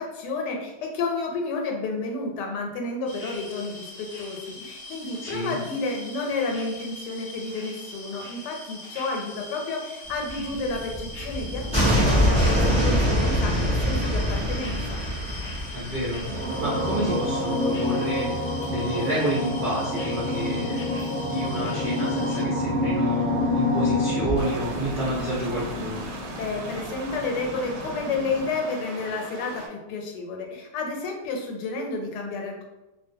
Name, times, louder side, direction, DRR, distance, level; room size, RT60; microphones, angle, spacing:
voice 1, 0.0-15.0 26.3-32.6, left 3 dB, 85° left, 1 dB, 1.2 m, -31 dB
sound 1, 3.1-22.4, left 2 dB, 60° left, 0.6 m, -41 dB
voice 2, 5.2-5.6 15.7-20.9 21.2-26.0, right 1 dB, 45° right, -10 dB, 0.6 m, -30 dB
sound 2, 10.3-28.5, left 1 dB, 5° left, 0.8 m, -26 dB
sound 3, 24.4-29.7, right 2 dB, 80° right, 1.2 m, -39 dB
2.5 x 2.4 x 2.6 m, 1.0 s
omnidirectional pair, 1.8 m